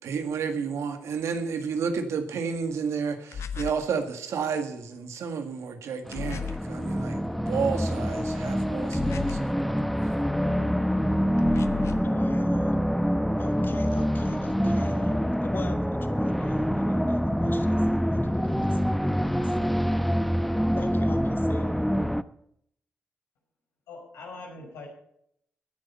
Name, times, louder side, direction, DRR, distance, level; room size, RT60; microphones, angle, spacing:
voice 1, 0.0-9.5, right 5 dB, 80° right, 7 dB, 1.9 m, -31 dB
sound 1, 3.3-3.9 6.1-6.7 8.9-9.6 11.4-12.1, left 7 dB, 70° left, 0.9 m, -35 dB
sound 2, 6.1-22.2, equal, ahead, 0.9 m, -26 dB
voice 2, 12.0-12.8 13.4-19.8 20.7-21.8, left 3 dB, 45° left, 9 dB, 1.5 m, -42 dB
voice 3, 23.9-24.9, left 3 dB, 90° left, -1 dB, 5.6 m, -42 dB
16.0 x 10.0 x 5.6 m, 0.70 s
supercardioid pair, 40°, 5 cm